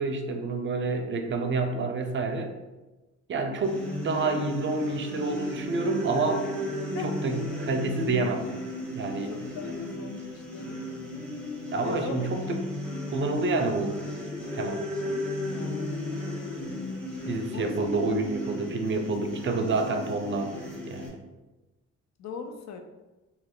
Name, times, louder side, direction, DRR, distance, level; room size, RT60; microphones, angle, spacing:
voice 1, 0.0-2.5 3.3-6.5 7.0-8.4 9.0-9.3 11.7-12.6 13.1-14.0 14.5-14.8 17.3-20.5 20.9-21.2, right 3 dB, 40° right, 5 dB, 0.5 m, -28 dB
sound 1, 3.6-21.1, left 1 dB, 5° left, 0.9 m, -34 dB
voice 2, 9.3-10.8 11.8-12.3 15.0-15.2 15.5-15.9 17.5-17.7 18.0-18.1 22.2-22.8, left 5 dB, 65° left, 6 dB, 0.5 m, -39 dB
3.1 x 2.3 x 3.6 m, 1.1 s
cardioid pair, 90°, 30 cm